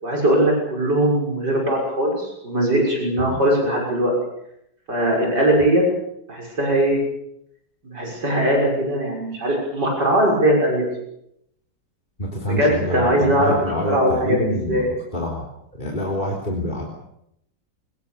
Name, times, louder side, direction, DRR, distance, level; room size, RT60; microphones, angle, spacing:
voice 1, 0.0-4.1 4.9-5.8 6.3-7.0 7.8-10.9 12.4-13.5 13.8-14.9, right 1 dB, 70° right, 0 dB, 7.1 m, -20 dB
voice 2, 12.2-14.8 15.1-15.4 15.8-16.8, left 1 dB, 25° left, -1 dB, 3.9 m, -26 dB
24.5 x 20.5 x 7.0 m, 0.77 s
omnidirectional pair, 1.9 m